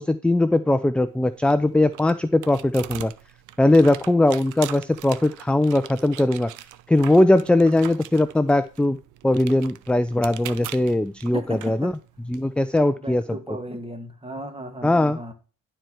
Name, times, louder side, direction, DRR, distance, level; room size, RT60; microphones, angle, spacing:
voice 1, 0.0-3.1 3.6-6.5 6.9-9.0 9.2-11.9 12.3-13.2 14.8-15.2, left 1 dB, 5° left, 0.5 m, -20 dB
sound 1, 1.1-12.8, right 13 dB, 90° right, 0.7 m, -42 dB
voice 2, 11.3-11.9 13.0-15.3, right 1 dB, 20° right, 2.0 m, -35 dB
11.5 x 4.6 x 4.5 m
cardioid pair, 90°, 30 cm